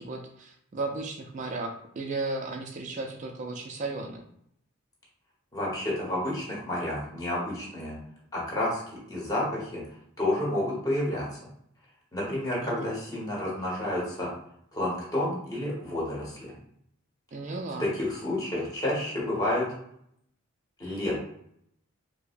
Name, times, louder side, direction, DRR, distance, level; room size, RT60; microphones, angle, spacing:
voice 1, 0.0-4.2 12.6-12.9 17.3-17.9, right 3 dB, 35° right, 3 dB, 0.3 m, -35 dB
voice 2, 5.5-8.0 8.3-8.8 9.1-9.8 10.2-11.4 12.1-14.3 14.7-16.5 17.8-19.7 20.8-21.1, left 1 dB, 15° left, -5 dB, 1.2 m, -30 dB
4.6 x 2.0 x 2.5 m, 0.71 s
head